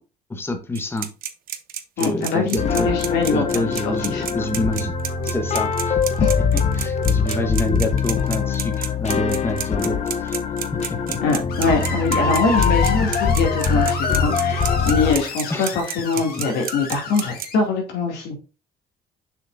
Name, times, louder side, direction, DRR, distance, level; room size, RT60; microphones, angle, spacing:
voice 1, 0.3-1.1 2.0-2.9 3.2-4.9 5.2-6.0 6.5-10.4 10.7-11.4 15.5-15.7 16.2-16.4, left 1 dB, 15° left, 6 dB, 1.0 m, -27 dB
sound 1, 0.8-17.5, right 10 dB, 60° right, 1.0 m, -30 dB
voice 2, 2.0-4.2 6.2-6.3 11.2-18.4, left 4 dB, 85° left, 2 dB, 2.5 m, -23 dB
sound 2, 2.6-15.2, left 5 dB, 40° left, 0.8 m, -23 dB
Screech, 11.5-17.6, left 4 dB, 65° left, 2.0 m, -31 dB
6.9 x 5.6 x 2.6 m, 0.32 s
cardioid pair, 110°, 17 cm